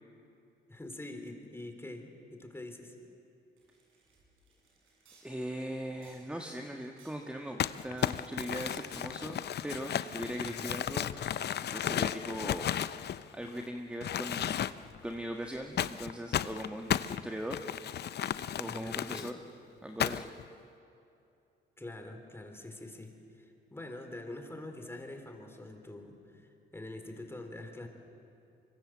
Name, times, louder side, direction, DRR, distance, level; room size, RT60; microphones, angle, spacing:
voice 1, 0.7-3.0 10.4-10.7 18.7-19.3 21.8-27.9, left 2 dB, 10° left, 5 dB, 3.7 m, -45 dB
sound 1, 3.6-11.2, right 2 dB, 85° right, 7.4 m, -62 dB
voice 2, 5.2-11.1 11.6-12.7 13.3-14.7 15.0-17.6 18.6-19.3 19.8-20.3, right 1 dB, 5° right, 3 dB, 1.5 m, -40 dB
Crumpling crinkling, 7.6-13.6 14.0-15.0 15.8-19.3 20.0-20.4, left 10 dB, 55° left, 0.6 m, -34 dB
24.5 x 24.5 x 7.6 m, 2.6 s
cardioid pair, 90°, 20 cm